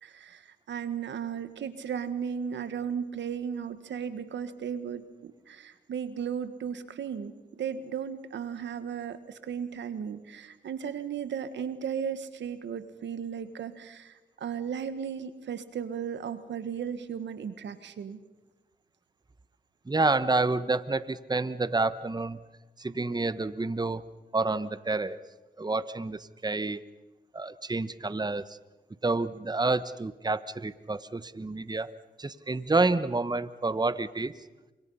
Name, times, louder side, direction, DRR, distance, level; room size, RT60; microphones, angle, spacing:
voice 1, 0.0-18.2, right 7 dB, 85° right, 11 dB, 1.6 m, -35 dB
voice 2, 19.9-22.4 22.8-24.0 24.3-25.2 25.6-26.8 27.3-28.6 29.0-31.9 32.2-34.3, right 3 dB, 20° right, 14 dB, 1.1 m, -29 dB
29.0 x 25.5 x 5.7 m, 1.1 s
cardioid pair, 50°, 18 cm